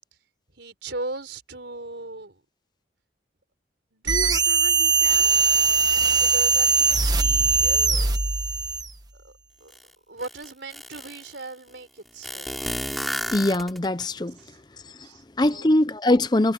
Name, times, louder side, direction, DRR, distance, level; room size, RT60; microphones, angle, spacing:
voice 1, 0.6-2.4 3.9-5.3 6.2-8.2 9.2-9.3 9.6-9.7 10.1-12.8 14.5-14.6 15.0-15.7, right 2 dB, 70° right, 4.1 m, -38 dB
sound 1, 4.1-8.9, right 4 dB, 20° right, 1.3 m, -20 dB
sound 2, 9.7-9.8 10.2-11.3 12.2-14.0, equal, ahead, 3.7 m, -32 dB
voice 2, 13.3-14.4 14.8-15.1 15.4-16.5, left 1 dB, 20° left, 0.6 m, -22 dB
head